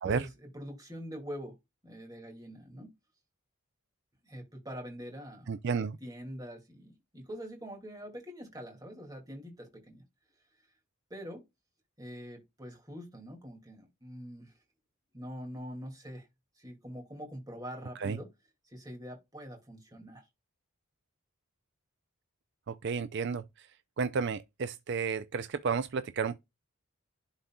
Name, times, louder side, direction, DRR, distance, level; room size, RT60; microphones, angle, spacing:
voice 1, 0.0-1.6 1.8-2.9 4.2-10.0 11.1-11.4 12.0-14.5 15.1-16.3 16.6-18.3 18.6-20.3, equal, 15° right, 2.3 m, -44 dB
voice 2, 5.5-6.0 18.0-18.2 22.7-23.7 24.0-26.4, right 5 dB, 50° right, 0.4 m, -32 dB
11.5 x 4.0 x 2.3 m
head